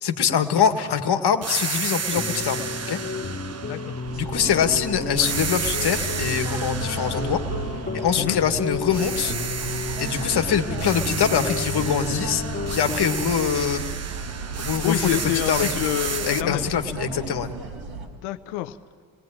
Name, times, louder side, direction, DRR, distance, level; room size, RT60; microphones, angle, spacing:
voice 1, 0.0-3.0 4.2-7.4 7.9-9.3 10.0-12.4 12.7-14.0 14.6-15.2 15.5-15.7 16.2-17.5, left 7 dB, 55° left, 7 dB, 1.9 m, -23 dB
sound 1, 1.4-4.7 5.2-8.5 8.9-16.4, right 5 dB, 30° right, 1.1 m, -32 dB
sound 2, 2.1-13.2, left 3 dB, 20° left, 2.6 m, -32 dB
voice 2, 3.6-4.0 8.2-8.4 14.8-16.7 18.2-18.8, left 15 dB, 85° left, 11 dB, 0.9 m, -27 dB
sound 3, 4.0-18.1, right 5 dB, 70° right, 4.3 m, -35 dB
28.5 x 19.5 x 9.0 m, 2.1 s
hypercardioid pair, 55°, 48 cm